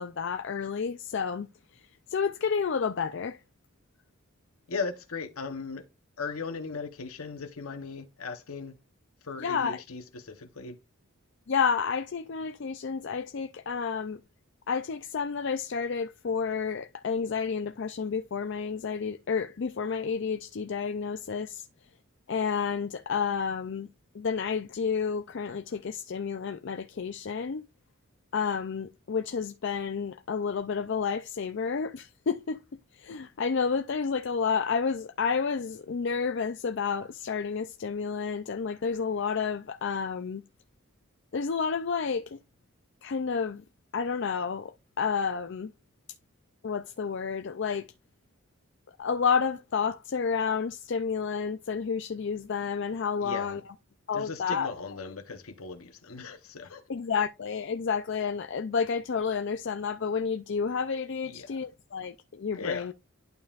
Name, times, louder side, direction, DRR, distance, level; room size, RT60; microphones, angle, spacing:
voice 1, 0.0-3.4 9.4-9.8 11.5-14.2 14.7-21.7 22.3-23.9 24.1-27.7 28.3-32.6 32.9-40.4 41.3-42.4 43.0-43.6 43.9-45.7 46.6-47.9 49.0-53.7 54.1-54.7 56.9-62.9, left 6 dB, 55° left, 0.4 m, -30 dB
voice 2, 4.7-5.8 6.2-8.8 9.2-10.8 53.2-53.6 54.1-56.8 61.2-61.6 62.5-62.9, left 4 dB, 80° left, 0.9 m, -37 dB
11.5 x 5.3 x 2.4 m
head